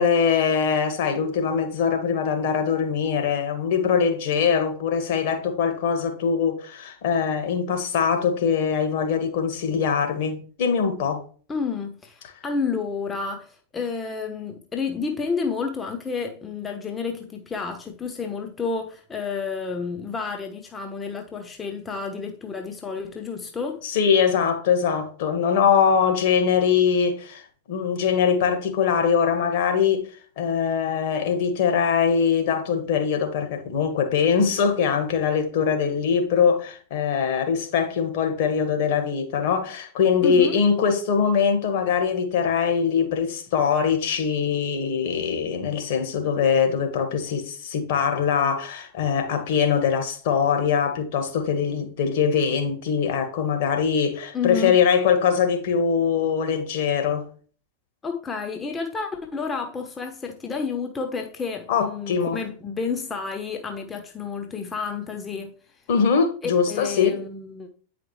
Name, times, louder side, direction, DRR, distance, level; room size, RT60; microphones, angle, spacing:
voice 1, 0.0-11.2 23.8-30.1 30.4-57.2 61.7-62.4 65.9-67.2, left 6 dB, 50° left, 1.8 m, -22 dB
voice 2, 11.5-23.8 40.2-40.6 54.3-54.8 58.0-65.5 66.4-67.7, left 5 dB, 15° left, 0.9 m, -30 dB
9.2 x 5.0 x 3.2 m
figure-of-eight pair, 90°, 0 cm